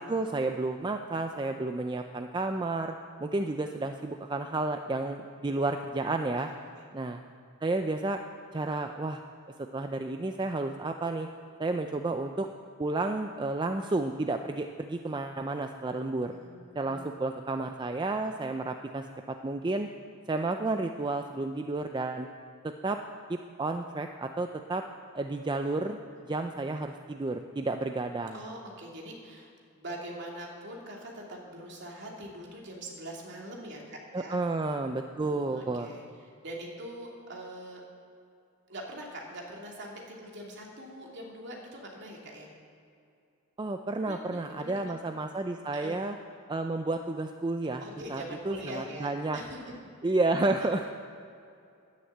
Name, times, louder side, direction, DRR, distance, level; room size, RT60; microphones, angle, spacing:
voice 1, 0.0-6.5 6.9-7.2 7.6-8.2 8.5-9.2 9.7-11.3 11.6-12.5 12.8-16.3 16.8-19.9 20.3-22.3 22.6-23.0 23.3-24.8 25.1-26.0 26.3-28.4 34.1-35.9 43.6-46.1 46.5-47.8 48.1-49.4 50.0-50.8, right 2 dB, 20° right, 6 dB, 0.4 m, -31 dB
voice 2, 6.4-6.9 16.3-17.2 26.1-26.2 28.3-34.4 35.2-37.8 38.7-42.5 44.0-44.9 45.7-46.0 47.8-49.6, right 1 dB, 55° right, -1 dB, 2.6 m, -43 dB
11.0 x 9.9 x 7.9 m, 2.5 s
head